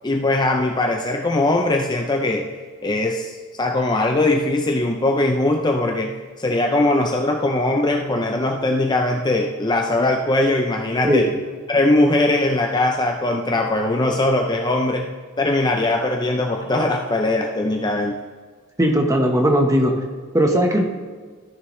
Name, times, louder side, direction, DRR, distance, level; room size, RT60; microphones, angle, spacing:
voice 1, 0.0-2.5 2.8-11.3 11.7-18.2, left 2 dB, 20° left, 2 dB, 0.5 m, -20 dB
voice 2, 18.8-19.9 20.3-20.8, equal, 15° right, 3 dB, 1.1 m, -17 dB
14.0 x 6.7 x 3.1 m, 1.5 s
head